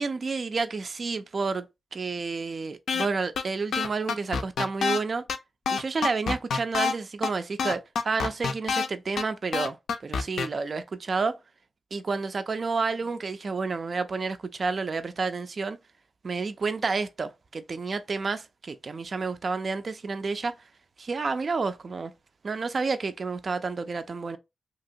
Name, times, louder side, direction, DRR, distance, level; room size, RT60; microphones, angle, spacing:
voice 1, 0.0-1.7 1.9-5.2 5.7-11.4 11.9-15.8 16.2-20.5 21.0-22.1 22.4-24.4, right 4 dB, 50° right, 0.3 m, -30 dB
sound 1, 2.9-3.1 3.4-3.5 3.7-5.0 5.3-5.4 5.7-6.9 7.2-7.3 7.6-8.9 9.2-9.3 9.5-10.5, left 5 dB, 85° left, 0.3 m, -26 dB
2.8 x 2.8 x 2.5 m
cardioid pair, 80°, 0 cm